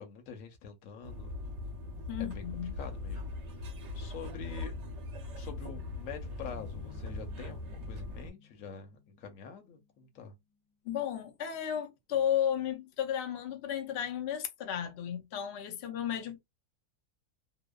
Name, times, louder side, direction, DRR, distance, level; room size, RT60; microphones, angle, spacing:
voice 1, 0.0-1.3 2.2-2.4 2.8-3.3 3.6-4.7 5.4-10.3, left 6 dB, 65° left, 0.9 m, -46 dB
sound 1, 1.0-8.3, left 2 dB, 55° right, 0.9 m, -40 dB
voice 2, 2.1-2.7 10.8-16.4, left 9 dB, 90° left, 0.5 m, -33 dB
sound 2, 6.4-10.7, left 7 dB, 20° left, 0.8 m, -53 dB
2.8 x 2.0 x 2.2 m
omnidirectional pair, 1.7 m